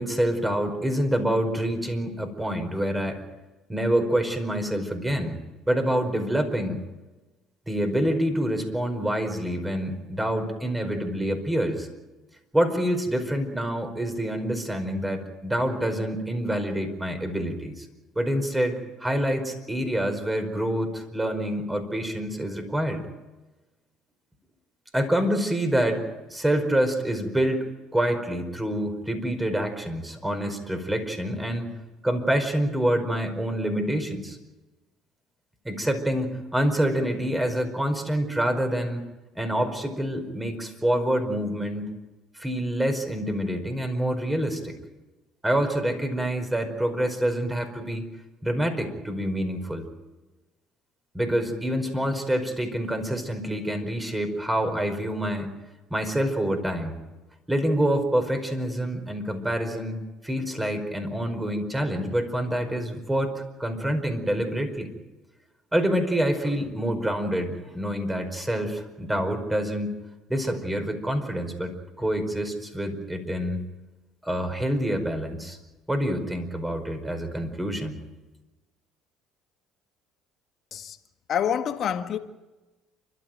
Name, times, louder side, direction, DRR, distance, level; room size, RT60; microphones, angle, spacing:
voice 1, 0.0-3.2 3.7-5.4 5.7-6.8 7.7-11.9 12.5-17.8 18.1-23.0 24.9-27.7 27.9-31.7 32.0-34.4 35.6-39.0 39.3-41.9 42.4-44.7 45.4-48.0 48.4-49.8 51.1-55.5 55.9-57.0 57.5-64.9 65.7-70.0 70.3-73.6 74.2-75.6 75.9-78.0, right 1 dB, 10° right, 5.0 m, -27 dB
voice 2, 81.3-82.2, left 8 dB, 55° left, 1.9 m, -27 dB
29.0 x 13.0 x 9.3 m
supercardioid pair, 80°, 0 cm